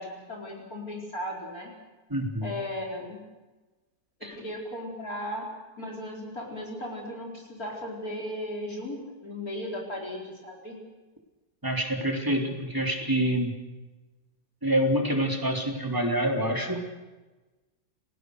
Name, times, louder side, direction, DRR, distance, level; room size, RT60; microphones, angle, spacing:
voice 1, 0.0-1.7 2.4-3.2 4.4-5.5 5.8-10.8, left 1 dB, 65° left, -1 dB, 5.1 m, -36 dB
voice 2, 2.1-2.6 4.2-4.4 11.6-13.5 14.6-16.8, right 1 dB, 10° right, 2 dB, 3.6 m, -26 dB
30.0 x 19.5 x 6.7 m, 1.2 s
omnidirectional pair, 1.7 m